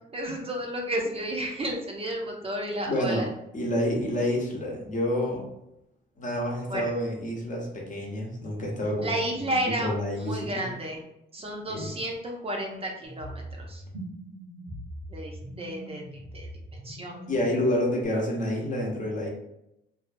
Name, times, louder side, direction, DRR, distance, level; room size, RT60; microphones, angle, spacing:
voice 1, 0.1-3.2 6.7-6.9 9.0-11.0 11.3-13.8 15.1-16.0 16.3-16.5 16.8-17.2, right 1 dB, 30° right, 0 dB, 0.5 m, -32 dB
voice 2, 2.9-3.3 3.5-5.5 6.2-9.5 9.8-10.7 11.7-11.9 17.3-19.3, left 1 dB, 40° left, -1 dB, 0.8 m, -28 dB
sound 1, 13.1-18.1, right 1 dB, 80° right, 0.8 m, -42 dB
2.5 x 2.3 x 2.5 m, 0.84 s
cardioid pair, 90°, 20 cm